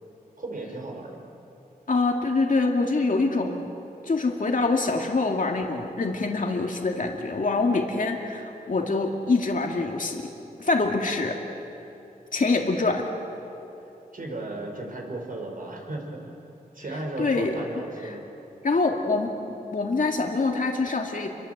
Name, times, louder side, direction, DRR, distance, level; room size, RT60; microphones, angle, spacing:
voice 1, 0.4-1.2 14.1-16.3 16.7-18.3, right 2 dB, 60° right, 1 dB, 5.2 m, -35 dB
voice 2, 1.9-3.7 4.0-10.3 10.6-11.4 12.3-13.1 17.2-17.5 18.0-18.2 18.6-19.3 19.7-21.3, left 3 dB, 60° left, 1 dB, 2.3 m, -25 dB
29.0 x 24.0 x 8.1 m, 3.0 s
wide cardioid pair, 90°, 16 cm